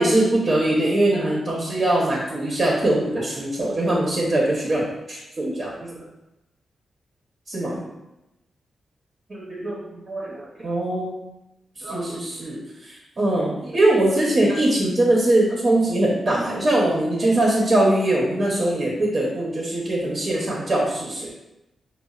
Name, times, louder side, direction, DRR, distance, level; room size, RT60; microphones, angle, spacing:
voice 1, 0.0-6.0 7.5-7.9 9.3-9.7 10.1-11.1 11.8-21.3, right 1 dB, 45° right, -3 dB, 0.9 m, -22 dB
5.3 x 2.4 x 2.4 m, 0.94 s
cardioid pair, 55°, 0 cm